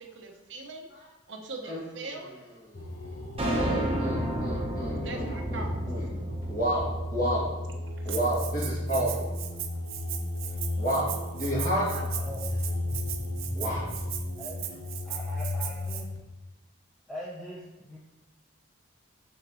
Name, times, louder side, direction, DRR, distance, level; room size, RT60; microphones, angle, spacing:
voice 1, 0.0-2.3 5.0-5.7 8.0-8.2 10.5-10.6 11.7-12.2, right 3 dB, 65° right, 1 dB, 0.9 m, -41 dB
sound 1, 2.7-16.2, left 1 dB, 70° left, 1.1 m, -34 dB
sound 2, 3.4-7.8, right 1 dB, 30° right, 1.0 m, -32 dB
voice 2, 3.6-6.1 6.5-7.5 8.0-9.3 10.8-11.8 13.5-13.9, right 1 dB, 40° left, -6 dB, 2.3 m, -30 dB
Rattle (instrument), 8.1-16.0, right 11 dB, 85° right, 0.6 m, -38 dB
voice 3, 14.4-16.1 17.1-18.0, equal, ahead, -6 dB, 0.7 m, -42 dB
6.8 x 6.6 x 3.1 m, 1.1 s
head